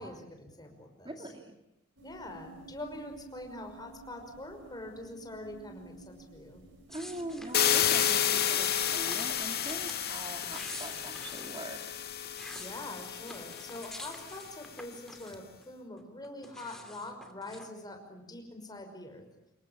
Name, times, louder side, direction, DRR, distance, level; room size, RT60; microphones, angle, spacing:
voice 1, 0.0-1.3 2.0-6.6 12.6-19.2, left 1 dB, 20° left, 4 dB, 5.7 m, -44 dB
voice 2, 1.0-1.6 6.9-12.0, right 1 dB, 25° right, 4 dB, 2.4 m, -42 dB
sound 1, 2.0-15.4, right 3 dB, 60° right, 6.8 m, -55 dB
sound 2, 6.9-8.0 8.6-10.0 10.4-11.5 12.1-15.7 16.0-17.7, left 1 dB, ahead, 2.8 m, -48 dB
sound 3, 7.5-14.4, left 10 dB, 50° left, 2.3 m, -31 dB
27.0 x 22.5 x 9.0 m, 0.83 s
head